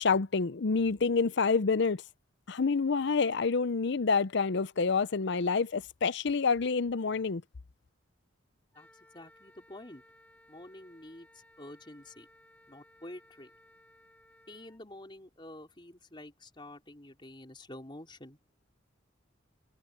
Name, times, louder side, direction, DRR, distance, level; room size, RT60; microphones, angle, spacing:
voice 1, 0.0-2.0 2.5-7.4, left 4 dB, 60° left, 0.6 m, -28 dB
voice 2, 8.7-10.0 10.5-12.3 12.7-13.5 14.5-18.4, left 1 dB, 25° left, 4.2 m, -48 dB
Wind instrument woodwind instrument, 8.7-14.8, left 1 dB, 10° left, 2.5 m, -61 dB
head